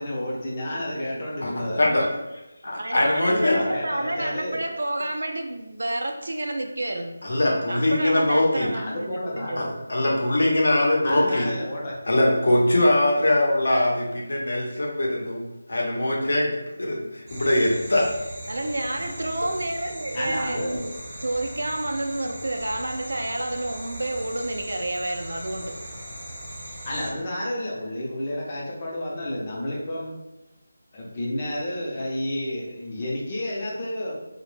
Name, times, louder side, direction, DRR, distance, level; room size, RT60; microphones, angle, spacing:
voice 1, 0.0-1.9 3.3-4.6 8.7-9.7 11.0-11.9 20.1-20.8 26.8-30.1 30.9-34.1, left 1 dB, 25° left, -4 dB, 0.5 m, -30 dB
voice 2, 1.8-2.1 2.7-7.2 7.7-9.7 18.5-20.9 21.2-25.8, right 1 dB, 75° right, 3 dB, 0.4 m, -30 dB
voice 3, 2.6-3.6 7.2-8.7 9.6-11.5 12.1-15.4 15.7-18.1, left 1 dB, 70° left, -2 dB, 0.7 m, -22 dB
sound 1, 17.3-27.1, right 1 dB, 20° right, 0.6 m, -39 dB
2.1 x 2.0 x 3.1 m, 0.96 s
figure-of-eight pair, 170°, 0 cm